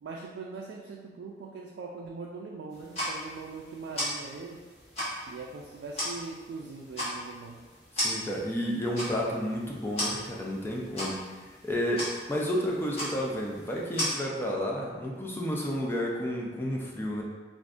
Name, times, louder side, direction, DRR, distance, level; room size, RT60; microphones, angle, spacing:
voice 1, 0.0-4.6 5.3-7.6, right 4 dB, 85° right, -1 dB, 0.3 m, -41 dB
sound 1, 2.7-14.1, equal, 35° left, 1.0 m, -37 dB
voice 2, 7.9-11.2 11.6-17.2, equal, 15° left, -2 dB, 0.4 m, -31 dB
3.5 x 2.5 x 2.4 m, 1.4 s
head